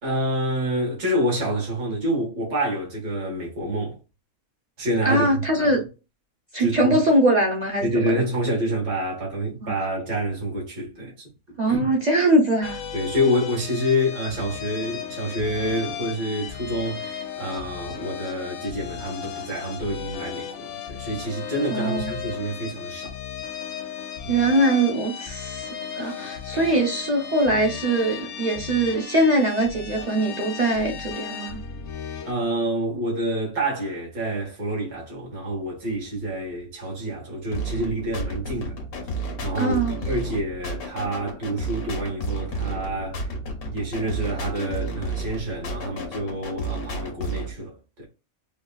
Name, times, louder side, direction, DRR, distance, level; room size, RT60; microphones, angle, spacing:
voice 1, 0.0-4.0 4.8-5.8 6.6-7.0 7.8-11.3 11.7-11.9 12.9-23.2 24.2-24.4 26.0-26.2 32.3-38.8 39.4-43.3 43.6-48.0, equal, 80° right, 2.1 m, -27 dB
voice 2, 5.0-5.8 6.5-8.2 9.6-9.7 11.6-12.8 21.7-22.1 24.3-25.7 26.0-31.6 39.5-40.0, right 1 dB, 50° right, 0.5 m, -22 dB
sound 1, 12.6-32.3, left 8 dB, 65° left, 0.8 m, -35 dB
sound 2, 37.5-47.5, right 1 dB, 90° left, 1.4 m, -32 dB
4.5 x 2.3 x 2.3 m
omnidirectional pair, 1.5 m